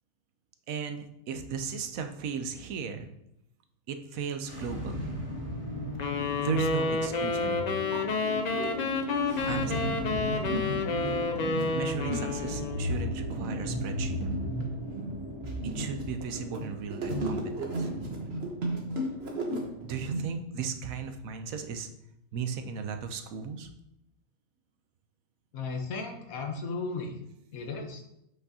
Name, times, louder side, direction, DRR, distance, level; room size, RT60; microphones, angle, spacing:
voice 1, 0.7-3.1 3.9-5.2 6.4-7.8 9.5-10.0 11.7-14.2 15.6-17.9 19.8-21.9 22.3-23.7, right 6 dB, 75° right, 7 dB, 1.1 m, -36 dB
sound 1, 4.4-19.3, equal, 25° right, 2.0 m, -38 dB
sound 2, 6.0-12.9, left 4 dB, 55° left, 0.4 m, -30 dB
sound 3, 7.3-7.4 7.7-8.7 9.3-20.2, right 1 dB, 50° right, 1.4 m, -34 dB
voice 2, 25.5-27.1 27.5-28.0, left 4 dB, 75° left, 3 dB, 1.4 m, -35 dB
7.5 x 5.8 x 2.8 m, 0.81 s
omnidirectional pair, 1.5 m